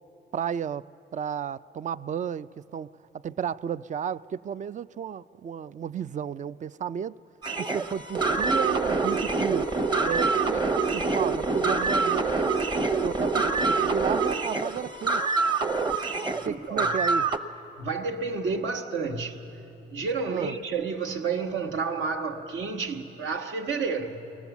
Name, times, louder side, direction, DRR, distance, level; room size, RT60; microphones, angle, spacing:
voice 1, 0.3-7.2 7.6-9.7 10.0-12.6 13.0-15.5 16.4-17.3 20.3-20.6, right 8 dB, 40° right, 0.4 m, -33 dB
sound 1, 7.4-17.4, right 3 dB, 20° right, 1.0 m, -26 dB
voice 2, 16.2-16.9 17.8-24.4, right 4 dB, 75° right, 1.5 m, -31 dB
23.5 x 19.0 x 7.2 m
cardioid pair, 90°, 20 cm